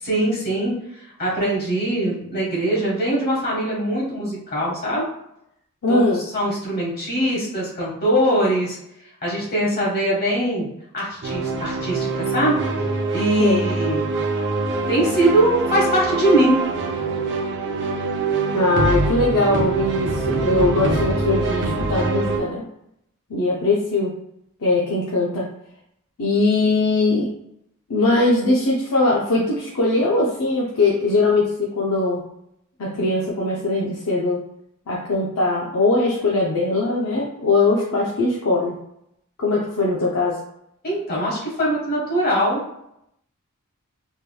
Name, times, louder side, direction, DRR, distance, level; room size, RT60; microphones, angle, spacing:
voice 1, 0.0-5.1 5.9-6.0 6.3-8.8 9.2-10.7 10.9-12.6 13.1-14.1 14.9-16.6 40.8-42.6, right 1 dB, 45° left, -5 dB, 1.4 m, -22 dB
voice 2, 5.8-6.2 13.4-13.6 18.5-22.6 23.3-24.1 24.6-25.5 26.2-27.3 27.9-32.2 32.8-34.4 34.9-38.7 39.4-40.4, left 2 dB, 70° left, -4 dB, 0.6 m, -20 dB
sound 1, 11.2-22.4, right 3 dB, 55° right, 0.6 m, -24 dB
3.5 x 3.0 x 2.2 m, 0.78 s
head